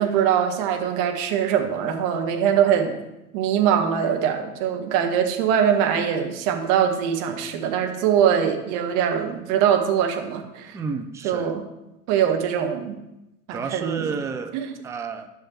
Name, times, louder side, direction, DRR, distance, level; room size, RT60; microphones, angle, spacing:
voice 1, 0.0-2.9 3.3-10.8 11.2-11.6 12.1-13.0 13.5-14.1 14.5-14.7, right 8 dB, 45° right, 4 dB, 1.5 m, -22 dB
voice 2, 10.7-11.6 13.5-14.6 14.8-15.3, right 5 dB, 5° right, 6 dB, 0.4 m, -31 dB
11.0 x 5.7 x 4.5 m, 0.94 s
figure-of-eight pair, 85°, 44 cm